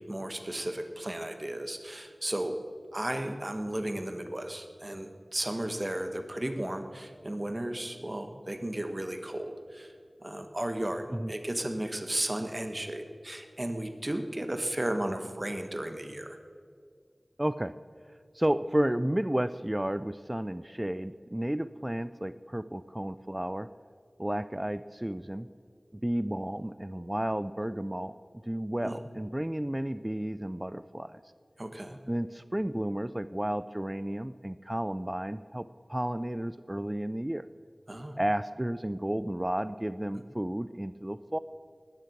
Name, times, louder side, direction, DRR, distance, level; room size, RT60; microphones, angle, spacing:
voice 1, 0.0-2.6 2.9-9.9 10.2-16.4 28.8-29.0 31.6-32.0 37.9-38.2, right 1 dB, 35° right, 7 dB, 1.2 m, -34 dB
voice 2, 17.4-17.7 18.3-23.7 24.2-25.5 25.9-28.1 28.5-31.2 32.1-37.5 38.2-41.4, right 1 dB, 20° right, 13 dB, 0.4 m, -32 dB
19.0 x 7.7 x 6.6 m, 2.2 s
wide cardioid pair, 40°, 0 cm